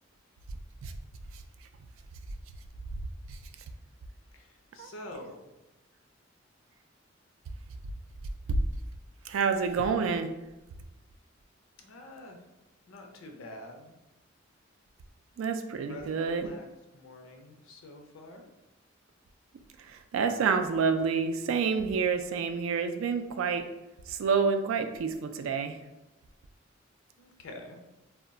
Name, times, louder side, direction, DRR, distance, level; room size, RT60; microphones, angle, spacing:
voice 1, 4.3-5.5 11.8-12.4 12.8-14.0 15.9-16.7 16.9-18.5 27.2-27.8, left 1 dB, 75° left, 3 dB, 0.5 m, -46 dB
voice 2, 9.3-10.3 15.4-16.5 19.8-23.7 24.1-25.8, right 5 dB, 80° right, 7 dB, 0.3 m, -28 dB
2.3 x 2.1 x 3.7 m, 1.0 s
head